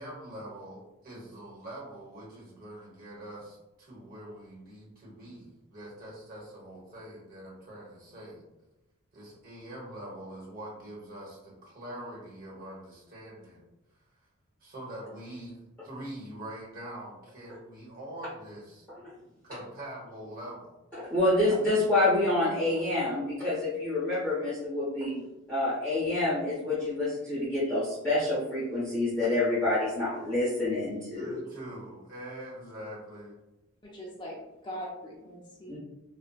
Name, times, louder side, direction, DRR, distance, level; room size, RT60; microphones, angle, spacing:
voice 1, 0.0-8.4 9.1-13.6 14.6-18.8 19.5-20.7 31.1-33.4, right 1 dB, 40° right, -4 dB, 1.0 m, -44 dB
voice 2, 21.1-25.2 25.5-31.4 35.7-35.8, left 2 dB, 5° left, -11 dB, 0.8 m, -27 dB
voice 3, 33.8-35.8, equal, 20° left, -4 dB, 0.4 m, -41 dB
4.1 x 2.1 x 2.3 m, 0.98 s
head